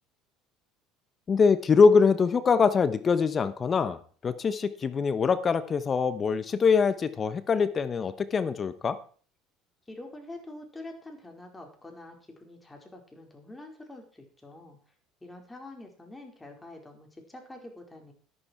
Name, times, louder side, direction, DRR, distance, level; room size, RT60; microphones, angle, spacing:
voice 1, 1.3-9.0, left 5 dB, 35° left, 14 dB, 1.0 m, -23 dB
voice 2, 9.9-14.8 15.2-18.1, left 2 dB, 15° left, 3 dB, 4.8 m, -46 dB
13.0 x 11.5 x 4.6 m, 0.43 s
hypercardioid pair, 70°, 0 cm